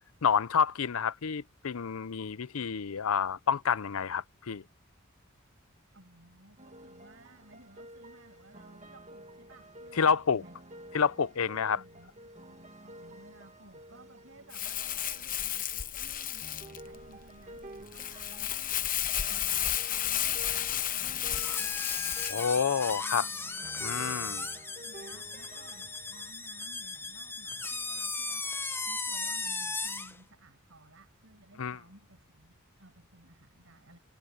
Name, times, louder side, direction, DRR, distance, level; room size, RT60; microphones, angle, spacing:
voice 1, 0.2-4.6 10.0-10.4 10.9-11.8 22.3-23.3 23.8-24.4 31.6-31.8, left 6 dB, 80° left, 0.6 m, -29 dB
voice 2, 5.9-10.6 11.7-34.0, right 1 dB, 65° right, 7.6 m, -57 dB
sound 1, 6.6-26.3, right 1 dB, 35° right, 1.7 m, -51 dB
Crumpling crinkling, 14.5-22.4, left 11 dB, 40° left, 0.9 m, -32 dB
sound 2, 21.3-30.2, left 3 dB, 10° left, 0.9 m, -36 dB
head